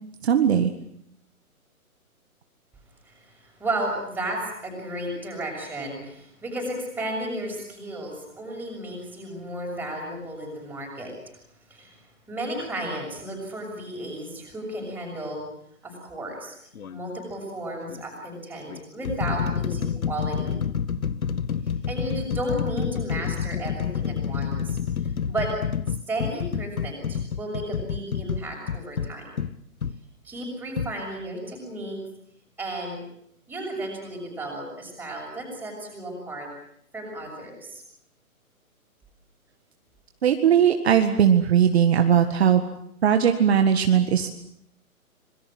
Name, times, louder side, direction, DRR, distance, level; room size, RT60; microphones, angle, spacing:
voice 1, 0.2-0.7 40.2-42.6 43.0-44.3, right 8 dB, 45° right, 6 dB, 1.8 m, -19 dB
voice 2, 3.0-11.1 11.7-12.0 12.3-15.4 15.8-16.5 16.9-20.6 21.9-25.5 25.9-29.4 30.2-32.0 32.6-33.1 33.5-36.5 36.9-37.8, right 1 dB, 5° right, 0 dB, 6.7 m, -33 dB
sound 1, 16.7-17.0 17.9-18.0 18.7-30.0 30.8-30.9, left 7 dB, 70° left, 1.5 m, -29 dB
26.0 x 22.5 x 7.8 m, 0.72 s
hypercardioid pair, 160°, 43 cm